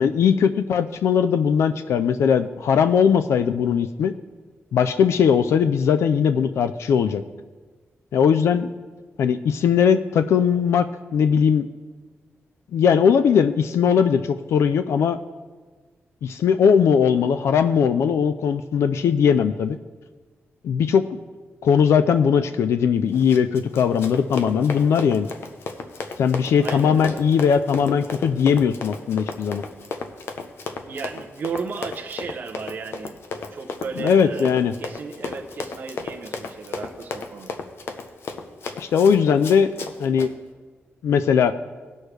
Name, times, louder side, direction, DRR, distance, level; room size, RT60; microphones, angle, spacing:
voice 1, 0.0-4.1 4.7-7.2 8.1-8.7 9.2-10.9 11.1-11.7 12.7-15.2 16.2-19.8 20.6-21.2 21.6-25.3 26.2-29.6 34.0-34.7 38.8-39.7 40.0-40.3 41.0-41.6, left 7 dB, 90° left, 10 dB, 0.4 m, -19 dB
Run, 23.1-40.3, left 4 dB, 65° left, 0.8 m, -34 dB
voice 2, 26.6-27.2 30.9-33.2 33.5-37.5, right 5 dB, 45° right, 1 dB, 0.7 m, -34 dB
18.5 x 6.3 x 3.3 m, 1.4 s
wide cardioid pair, 175°, 4 cm